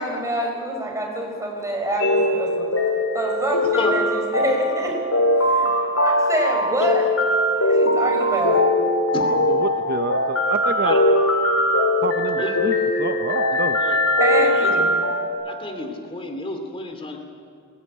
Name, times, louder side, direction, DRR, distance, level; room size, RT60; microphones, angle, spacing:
voice 1, 0.0-2.6 3.1-4.0 4.3-4.9 5.4-7.1 7.5-8.6 14.2-14.9, right 1 dB, 15° right, 0 dB, 5.2 m, -26 dB
sound 1, 2.0-15.3, left 1 dB, 70° left, 5.3 m, -21 dB
voice 2, 9.2-10.9 12.0-13.8, right 3 dB, 45° right, 8 dB, 0.9 m, -28 dB
voice 3, 14.3-14.8 15.5-17.2, left 2 dB, 25° left, 4 dB, 2.5 m, -30 dB
21.5 x 18.5 x 9.9 m, 2.2 s
head